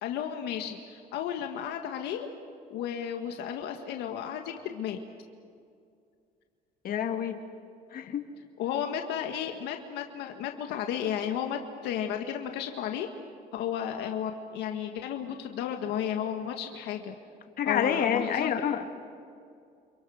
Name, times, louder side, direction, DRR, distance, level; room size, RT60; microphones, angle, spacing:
voice 1, 0.0-2.3 2.7-5.0 8.6-13.1 13.5-17.1 17.7-18.5, left 9 dB, 85° left, 4 dB, 1.7 m, -33 dB
voice 2, 6.8-7.4 7.9-8.2 17.6-18.8, left 8 dB, 60° left, 5 dB, 2.2 m, -28 dB
30.0 x 26.5 x 6.5 m, 2.4 s
cardioid pair, 110°, 17 cm